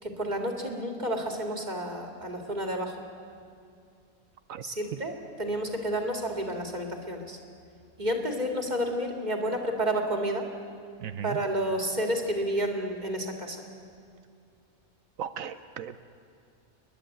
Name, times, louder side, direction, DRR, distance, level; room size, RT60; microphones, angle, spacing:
voice 1, 0.0-3.0 4.6-7.4 8.0-10.5 11.2-13.6, right 1 dB, 30° right, 3 dB, 2.3 m, -30 dB
voice 2, 15.2-16.0, right 8 dB, 75° right, 11 dB, 1.1 m, -37 dB
30.0 x 11.0 x 9.1 m, 2.4 s
omnidirectional pair, 1.5 m